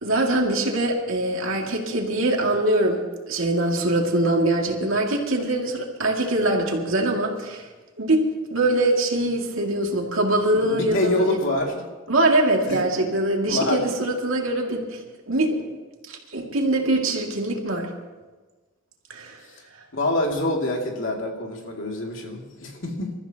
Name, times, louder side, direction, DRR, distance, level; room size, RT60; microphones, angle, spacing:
voice 1, 0.0-3.0 3.3-7.7 8.0-8.2 8.5-11.4 12.1-15.7 16.1-17.9 19.1-19.4, right 1 dB, 85° right, 0 dB, 2.4 m, -23 dB
voice 2, 10.7-11.9 12.7-13.1 13.5-13.8 19.9-23.1, left 1 dB, 70° left, 0 dB, 2.6 m, -26 dB
27.0 x 14.0 x 3.0 m, 1.3 s
head